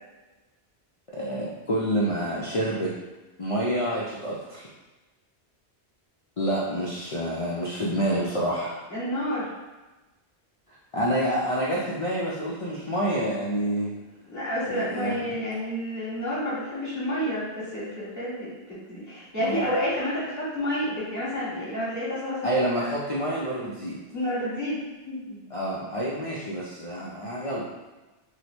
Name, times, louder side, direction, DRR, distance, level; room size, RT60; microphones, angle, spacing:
voice 1, 1.1-2.9 3.4-4.7 6.4-8.8 10.9-13.9 14.7-15.2 19.4-19.7 22.4-24.0 25.5-27.6, right 1 dB, 55° left, -6 dB, 0.4 m, -28 dB
voice 2, 8.9-9.5 12.7-12.8 14.2-22.6 24.1-25.4, equal, 15° left, -9 dB, 1.3 m, -30 dB
3.0 x 2.1 x 4.1 m, 1.1 s
omnidirectional pair, 1.1 m